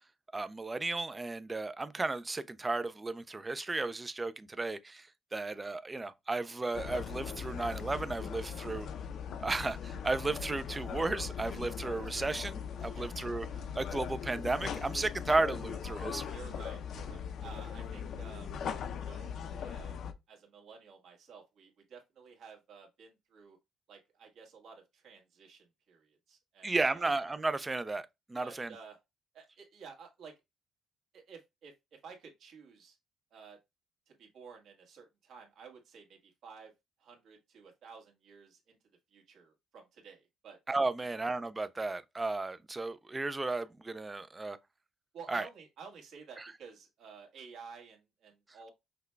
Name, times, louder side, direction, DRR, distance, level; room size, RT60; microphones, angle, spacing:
voice 1, 0.3-8.9 9.4-13.5 13.7-16.4 26.6-28.7 40.7-44.6 45.3-45.5, right 3 dB, 15° right, 0.3 m, -34 dB
sound 1, 6.7-20.1, left 7 dB, 55° left, 0.5 m, -40 dB
voice 2, 16.3-18.5 19.0-20.0 20.3-23.6 23.9-27.1 28.4-29.0 29.3-30.4 31.1-31.7 32.0-33.0 33.3-33.6 34.1-36.7 37.0-38.8 39.1-40.6 41.1-41.2 45.1-48.7, right 5 dB, 65° right, 1.5 m, -52 dB
5.8 x 2.2 x 3.2 m
cardioid pair, 145°, 0 cm